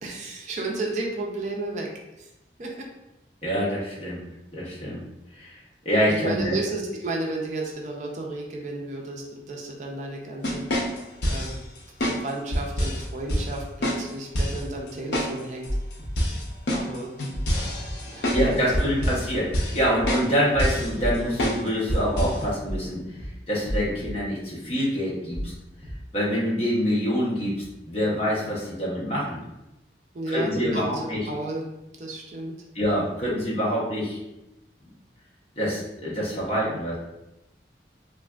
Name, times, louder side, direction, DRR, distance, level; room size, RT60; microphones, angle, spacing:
voice 1, 0.0-1.9 2.2-2.3 2.6-2.9 6.1-10.6 11.2-11.5 12.0-15.7 16.7-17.1 18.0-18.4 18.7-18.8 30.1-30.9 31.3-31.6 32.0-32.5, right 2 dB, 45° right, -1 dB, 0.4 m, -32 dB
voice 2, 3.4-4.2 4.5-5.0 5.3-5.6 5.8-6.5 18.3-23.0 23.5-25.5 26.1-29.4 30.3-31.3 32.7-34.2 35.6-37.0, equal, 35° left, -5 dB, 0.8 m, -26 dB
sound 1, 10.4-11.5 12.0-12.2 12.5-13.0 13.3-13.4 13.8-14.0 14.4-14.6 15.1-15.3 15.6-15.7 16.2-18.4 18.7-19.2 19.5-19.8 20.1-20.3 20.6-20.9 21.4-21.6 21.9-22.4, equal, 75° left, 0.6 m, -25 dB
sound 2, 15.7-16.1 17.3-17.5 17.8-17.9 18.3-18.8 20.0-20.2 20.5-20.6 21.0-21.4 22.7-22.9 23.2-23.3 23.7-24.1 25.3-25.5 25.8-25.9, equal, 15° right, 0.8 m, -31 dB
3.3 x 2.5 x 2.3 m, 0.92 s
head